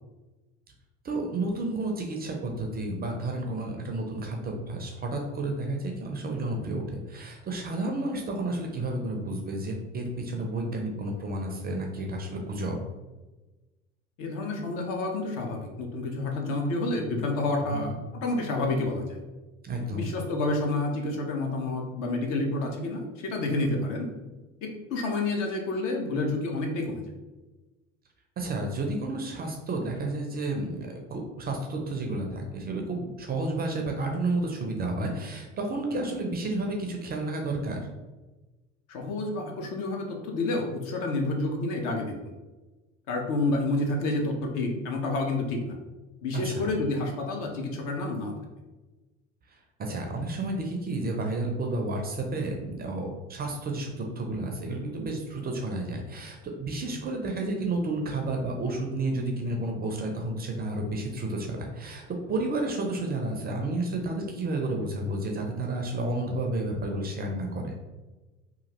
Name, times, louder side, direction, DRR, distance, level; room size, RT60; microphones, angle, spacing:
voice 1, 1.0-12.8 17.7-18.0 19.6-20.1 28.4-37.8 46.3-46.7 49.8-62.0 62.3-67.7, right 2 dB, 25° right, 2 dB, 0.5 m, -31 dB
voice 2, 14.2-19.2 19.9-24.1 24.6-27.0 38.9-42.1 43.1-45.8 46.2-48.3, left 2 dB, 55° left, 2 dB, 0.7 m, -29 dB
2.9 x 2.4 x 2.9 m, 1.2 s
hypercardioid pair, 70°, 38 cm